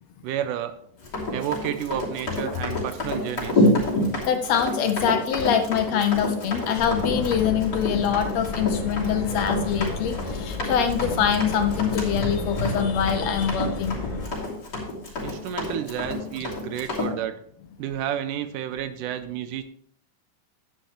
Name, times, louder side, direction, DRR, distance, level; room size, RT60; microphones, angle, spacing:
voice 1, 0.2-0.8 1.3-3.7 15.2-17.3 17.8-19.6, right 10 dB, 85° right, 11 dB, 2.1 m, -31 dB
Run, 1.0-17.1, left 1 dB, 30° left, 3.5 m, -28 dB
voice 2, 4.2-14.0, left 8 dB, 80° left, 7 dB, 1.5 m, -24 dB
Subway metro underground, 6.8-14.3, left 3 dB, 50° left, 0.9 m, -32 dB
10.5 x 9.9 x 3.1 m, 0.62 s
omnidirectional pair, 3.7 m